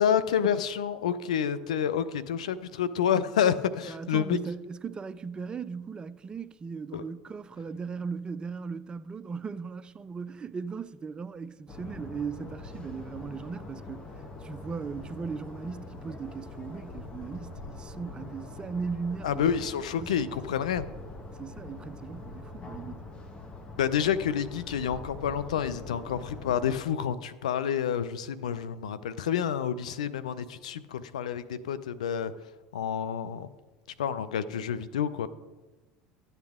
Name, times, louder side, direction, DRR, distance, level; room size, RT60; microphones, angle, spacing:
voice 1, 0.0-4.4 6.9-7.0 19.2-20.8 23.8-32.3 32.7-33.5 34.0-35.3, left 8 dB, 85° left, 0.5 m, -29 dB
voice 2, 3.9-14.1 14.4-19.4 20.0-20.1 21.3-23.1, right 5 dB, 25° right, 0.4 m, -38 dB
sound 1, 11.7-26.8, left 3 dB, 30° left, 1.3 m, -43 dB
13.0 x 8.1 x 3.6 m
hypercardioid pair, 90°, 4 cm